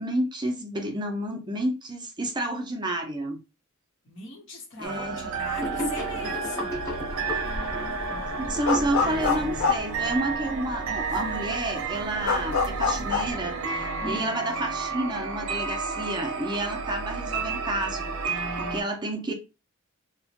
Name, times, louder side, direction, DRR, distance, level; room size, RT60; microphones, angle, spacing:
voice 1, 0.0-3.4 4.8-5.3 8.1-19.3, right 1 dB, 20° right, 0.5 m, -30 dB
voice 2, 4.0-6.8 14.0-14.3, left 2 dB, 65° left, 0.9 m, -39 dB
sound 1, 4.8-18.8, right 4 dB, 75° right, 0.5 m, -32 dB
Gurgling / Sink (filling or washing), 5.6-10.0, left 1 dB, 15° left, 0.9 m, -35 dB
sound 2, 6.8-7.2 7.5-10.7 11.1-11.2 11.5-13.3, left 5 dB, 85° left, 0.5 m, -27 dB
2.8 x 2.1 x 2.8 m
head